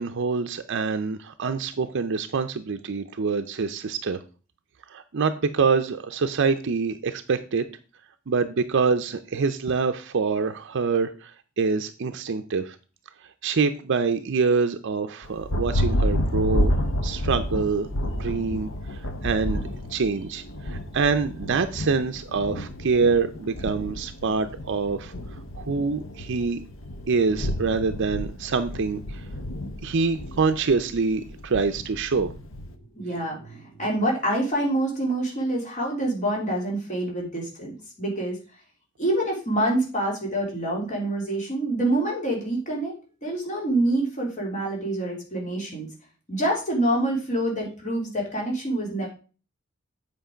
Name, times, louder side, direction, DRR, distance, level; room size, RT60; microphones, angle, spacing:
voice 1, 0.0-4.2 4.9-7.6 8.3-11.3 11.6-12.8 13.4-16.7 17.0-17.9 18.2-19.6 19.9-25.1 25.6-26.6 27.1-29.2 29.8-32.3, right 4 dB, 60° right, 9 dB, 0.5 m, -25 dB
Thunder, 15.2-32.8, equal, 65° left, 0.9 m, -30 dB
voice 2, 32.9-38.4 39.0-42.9 43.2-45.9 46.3-49.1, right 1 dB, 35° left, -2 dB, 3.0 m, -26 dB
8.1 x 5.2 x 5.0 m, 0.36 s
head